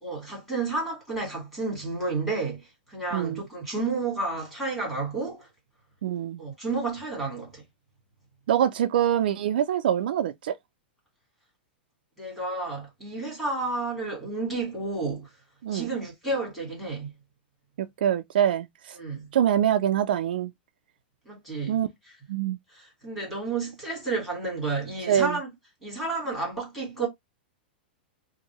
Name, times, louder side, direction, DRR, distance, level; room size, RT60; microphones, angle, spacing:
voice 1, 0.0-2.6 2.9-5.5 6.4-7.6 12.2-15.3 15.7-17.1 19.0-19.3 21.2-21.8 22.7-25.5 25.8-27.1, right 3 dB, 5° left, 1.6 m, -31 dB
voice 2, 3.1-3.4 6.0-6.4 8.5-10.6 15.6-15.9 17.8-19.0 19.3-20.5 21.7-21.9 22.3-22.6 25.1-25.4, right 10 dB, 65° right, 0.4 m, -24 dB
2.7 x 2.6 x 2.9 m
supercardioid pair, 175°, 6 cm